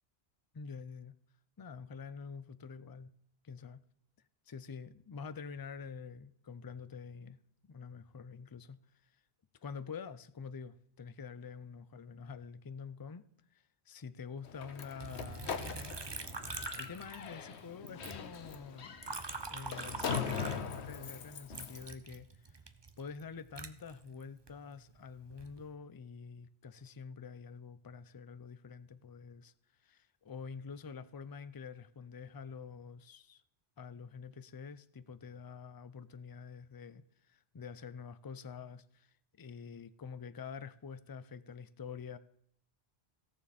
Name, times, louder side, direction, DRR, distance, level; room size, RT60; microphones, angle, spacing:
voice 1, 0.5-1.2 1.6-3.1 3.4-3.8 4.5-7.4 7.7-8.8 9.6-13.2 13.5-15.7 16.8-18.9 19.5-22.6 23.0-29.5 29.8-33.4 33.8-42.2, left 5 dB, 35° left, 0.3 m, -47 dB
Slam, 14.4-21.9, left 7 dB, 85° left, 1.2 m, -41 dB
Liquid, 15.0-17.6 17.9-21.1 21.5-24.5 25.1-25.6, right 3 dB, 25° right, 0.7 m, -44 dB
17.0 x 7.0 x 4.2 m
omnidirectional pair, 1.1 m